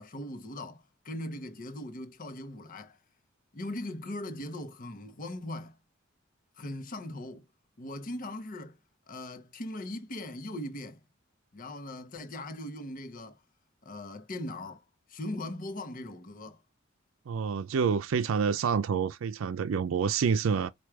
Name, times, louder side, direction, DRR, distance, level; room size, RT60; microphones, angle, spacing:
voice 1, 0.0-3.0 3.5-5.8 6.6-7.4 7.8-8.8 9.1-11.0 11.5-13.4 13.8-14.8 15.1-16.6, left 1 dB, 45° left, 0.7 m, -39 dB
voice 2, 17.3-20.7, right 6 dB, 90° right, 0.4 m, -28 dB
4.7 x 2.3 x 4.4 m
head